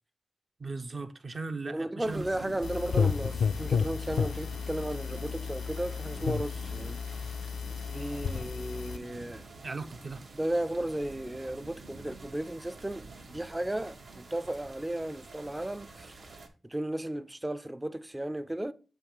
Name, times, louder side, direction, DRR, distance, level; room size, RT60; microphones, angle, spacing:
voice 1, 0.6-2.2 9.6-10.2, right 3 dB, 50° right, 0.7 m, -38 dB
voice 2, 1.6-7.0 7.9-9.4 10.0-16.4 16.6-18.7, right 1 dB, 15° right, 0.4 m, -35 dB
sound 1, 2.0-16.5, right 3 dB, 70° right, 1.1 m, -47 dB
sound 2, 2.6-9.0, left 6 dB, 85° left, 0.3 m, -32 dB
7.5 x 2.9 x 4.8 m
cardioid pair, 65°, 0 cm